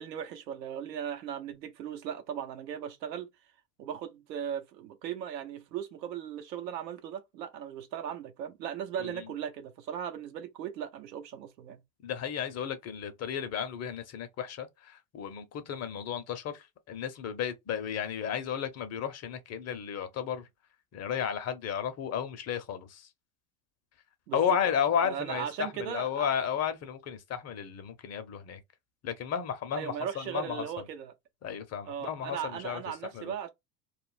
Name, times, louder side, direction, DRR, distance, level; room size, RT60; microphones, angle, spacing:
voice 1, 0.0-3.3 3.8-11.8 24.3-24.6 25.0-26.3 29.7-31.1 31.8-33.5, right 9 dB, 85° right, 0.8 m, -37 dB
voice 2, 12.0-20.4 20.9-23.1 24.3-28.6 29.0-30.7 31.4-32.8 33.1-33.3, left 8 dB, 30° left, 0.6 m, -33 dB
2.4 x 2.0 x 3.2 m
hypercardioid pair, 90°, 49 cm